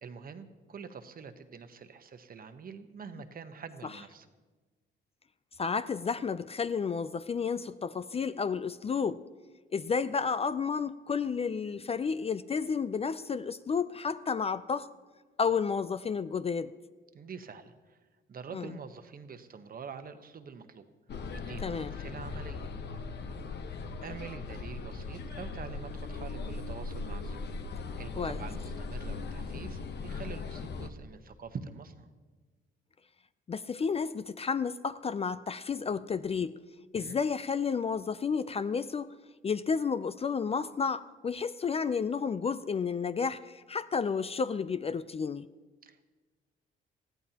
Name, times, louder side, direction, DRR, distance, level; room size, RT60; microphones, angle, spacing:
voice 1, 0.0-4.3 17.1-18.0 18.3-20.8 21.3-22.7 23.3-23.4 24.0-27.6 28.0-32.1 37.0-37.2 45.8-46.1, right 6 dB, 45° right, 9 dB, 1.0 m, -45 dB
voice 2, 5.6-9.2 9.7-14.9 15.4-16.7 18.5-18.7 21.6-21.9 28.2-28.4 33.5-36.6 36.9-39.1 39.4-45.5, left 5 dB, 30° left, 14 dB, 0.4 m, -31 dB
sound 1, 21.1-30.9, left 4 dB, 60° left, 0.9 m, -39 dB
20.0 x 14.0 x 2.9 m, 1.3 s
cardioid pair, 95°, 20 cm